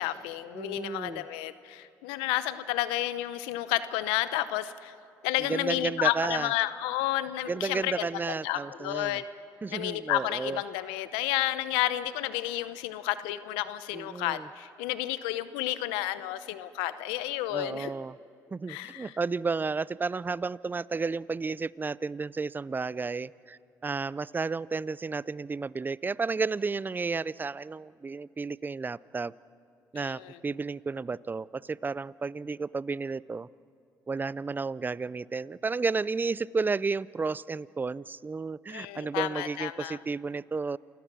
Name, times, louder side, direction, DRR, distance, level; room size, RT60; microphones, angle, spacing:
voice 1, 0.0-4.9 5.2-9.2 9.7-17.9 18.7-19.1 30.0-30.4 38.7-40.0, left 14 dB, 85° left, 14 dB, 0.8 m, -31 dB
voice 2, 0.5-1.2 5.4-6.5 7.5-9.2 9.6-10.6 13.9-14.5 17.5-18.2 18.5-29.3 29.9-33.5 34.1-40.8, right 4 dB, 25° right, 21 dB, 0.4 m, -32 dB
28.5 x 16.5 x 6.2 m, 2.5 s
supercardioid pair, 60°, 8 cm